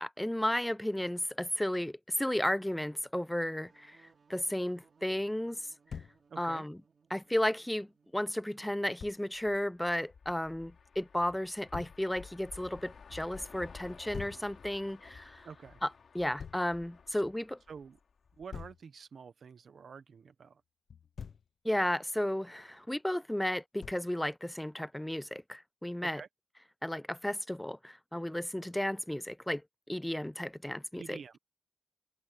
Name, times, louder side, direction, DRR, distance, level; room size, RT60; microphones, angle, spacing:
voice 1, 0.0-4.0 4.3-5.6 6.4-6.8 7.1-15.4 15.8-15.9 16.1-17.6 21.6-26.2 26.8-29.6 29.9-31.2, left 1 dB, 5° left, 0.3 m, -33 dB
sound 1, 3.5-9.0, right 5 dB, 55° right, 3.1 m, -67 dB
Thump thud, 5.9-6.2 9.0-9.2 11.7-12.0 14.1-14.5 16.4-16.7 18.5-18.8 20.9-21.5 23.8-24.1, left 7 dB, 90° left, 1.0 m, -44 dB
voice 2, 6.3-6.7 15.4-15.8 17.7-18.0 18.4-20.6 26.0-26.3 31.0-31.4, right 6 dB, 80° right, 1.0 m, -48 dB
sound 2, 9.3-18.6, left 5 dB, 70° left, 4.5 m, -54 dB
wide cardioid pair, 150°, 0 cm